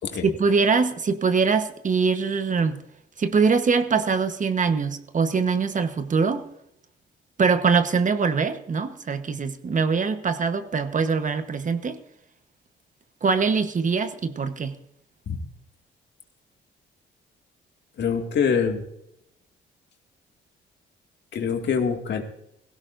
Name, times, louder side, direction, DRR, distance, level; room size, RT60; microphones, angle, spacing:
voice 1, 0.2-2.8 3.2-6.5 7.4-12.0 13.2-14.8, right 5 dB, 40° right, 9 dB, 1.2 m, -23 dB
voice 2, 18.0-18.8 21.3-22.2, left 6 dB, 60° left, 4 dB, 2.2 m, -24 dB
17.0 x 16.5 x 2.6 m, 0.78 s
cardioid pair, 90°, 20 cm